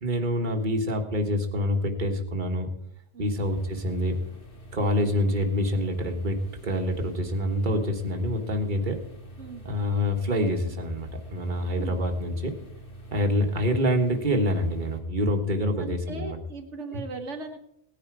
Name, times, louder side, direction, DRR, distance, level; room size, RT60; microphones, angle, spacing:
voice 1, 0.0-2.7 3.2-4.2 4.7-9.0 9.6-12.5 13.1-16.4 16.9-17.0, equal, 45° right, 3 dB, 1.7 m, -26 dB
sound 1, 3.3-15.0, right 1 dB, 50° left, 2.1 m, -45 dB
voice 2, 11.6-12.0 15.8-17.6, right 3 dB, 80° right, 4 dB, 1.6 m, -38 dB
18.0 x 10.0 x 4.7 m, 0.76 s
omnidirectional pair, 1.2 m